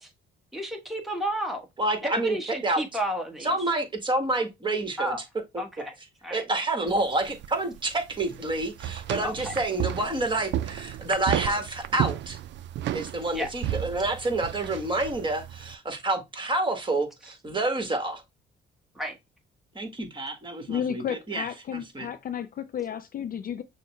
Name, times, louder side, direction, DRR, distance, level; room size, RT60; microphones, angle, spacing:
voice 1, 0.5-1.7 2.0-3.5 5.0-5.2 5.6-5.9 6.2-6.4 9.2-9.5 13.3-13.5 18.9-19.1, equal, ahead, 1.3 m, -31 dB
voice 2, 1.8-2.8 3.4-5.2 6.3-12.4 12.9-18.2 19.7-21.4 21.7-22.1, right 2 dB, 25° right, 1.6 m, -28 dB
sound 1, 6.9-15.8, right 12 dB, 65° right, 0.4 m, -33 dB
voice 3, 20.7-23.6, left 8 dB, 45° left, 0.4 m, -32 dB
6.3 x 2.2 x 3.1 m
cardioid pair, 90°, 20 cm